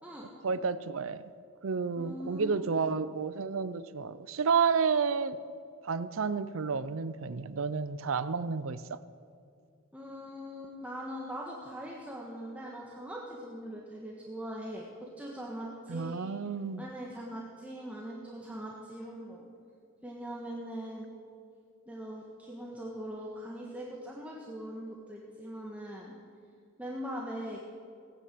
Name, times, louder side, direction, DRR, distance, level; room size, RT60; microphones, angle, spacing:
voice 1, 0.4-1.2 1.6-5.4 5.8-9.0 15.9-16.8, right 5 dB, 75° right, 15 dB, 0.5 m, -31 dB
voice 2, 2.0-2.6 9.9-16.3 16.8-19.4 20.0-21.1 21.9-26.1 26.8-27.6, equal, 5° right, -3 dB, 1.5 m, -41 dB
17.5 x 9.8 x 7.7 m, 2.3 s
head